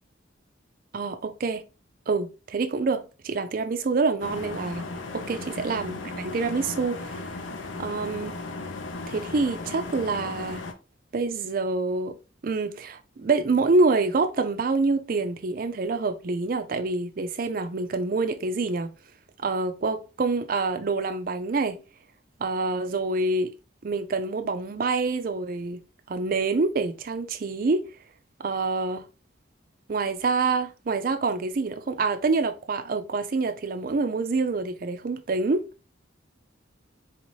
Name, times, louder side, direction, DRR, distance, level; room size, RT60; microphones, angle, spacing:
voice 1, 0.9-1.6 2.1-4.8 5.1-7.2 7.8-8.4 9.1-10.6 11.1-12.2 12.4-18.9 19.4-21.8 22.4-23.5 23.8-25.8 26.1-27.9 28.4-29.0 29.9-35.7, right 3 dB, 45° right, 0.4 m, -26 dB
sound 1, 4.2-10.7, left 3 dB, 80° left, 0.6 m, -36 dB
4.1 x 2.7 x 3.0 m
head